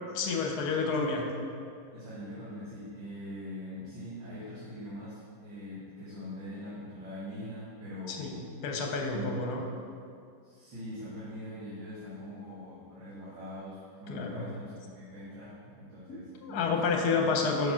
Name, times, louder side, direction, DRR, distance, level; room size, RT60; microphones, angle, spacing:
voice 1, 0.1-1.2 8.1-9.6 14.1-14.5 16.4-17.7, left 4 dB, 60° left, 2 dB, 1.3 m, -29 dB
voice 2, 0.8-1.2 1.9-8.3 9.1-9.6 10.4-17.4, equal, 85° right, -11 dB, 2.4 m, -43 dB
6.1 x 4.8 x 5.6 m, 2.3 s
omnidirectional pair, 2.0 m